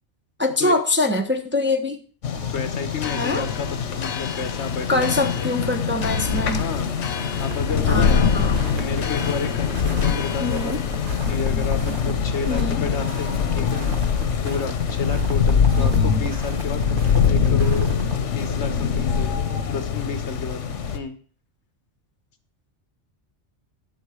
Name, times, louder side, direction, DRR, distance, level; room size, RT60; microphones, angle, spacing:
voice 1, 0.4-2.0 3.1-3.5 4.9-6.6 7.9-8.6 10.4-10.8 12.5-12.8 15.8-16.2, left 2 dB, 10° right, 4 dB, 0.8 m, -24 dB
sound 1, 2.2-21.0, left 6 dB, 85° left, 1.3 m, -23 dB
voice 2, 2.5-5.5 6.6-8.2 8.8-10.8 11.3-13.9 14.4-19.4 19.7-20.6 20.9-21.2, left 5 dB, 65° left, 9 dB, 1.3 m, -31 dB
sound 2, 3.0-11.2, left 7 dB, 50° left, 0.5 m, -36 dB
sound 3, 7.4-18.2, right 3 dB, 45° right, 1.3 m, -39 dB
12.0 x 7.2 x 4.9 m, 0.43 s
omnidirectional pair, 1.2 m